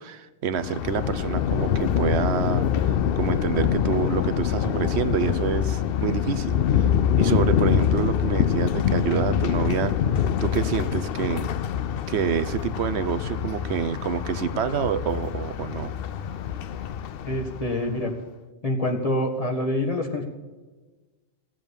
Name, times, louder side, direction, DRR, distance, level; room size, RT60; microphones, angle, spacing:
voice 1, 0.0-6.9 7.2-11.5 12.1-15.9, right 7 dB, 80° right, 13 dB, 1.0 m, -27 dB
Thunder, 0.6-18.0, left 8 dB, 65° left, 0.7 m, -25 dB
voice 2, 17.2-18.1 18.6-20.2, left 1 dB, 35° left, 1 dB, 1.9 m, -26 dB
16.0 x 7.5 x 7.1 m, 1.3 s
omnidirectional pair, 1.1 m